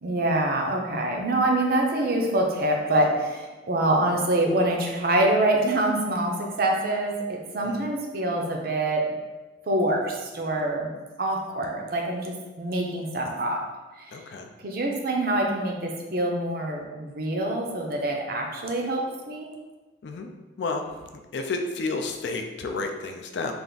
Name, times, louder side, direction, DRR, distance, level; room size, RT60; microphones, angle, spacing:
voice 1, 0.0-9.0 9.7-10.9 11.2-13.6 14.0-14.2 14.6-19.5, right 1 dB, 50° right, 1 dB, 0.5 m, -25 dB
voice 2, 14.1-14.5 20.0-20.3 20.6-23.5, left 3 dB, 65° left, 5 dB, 0.4 m, -31 dB
3.3 x 2.5 x 3.8 m, 1.2 s
head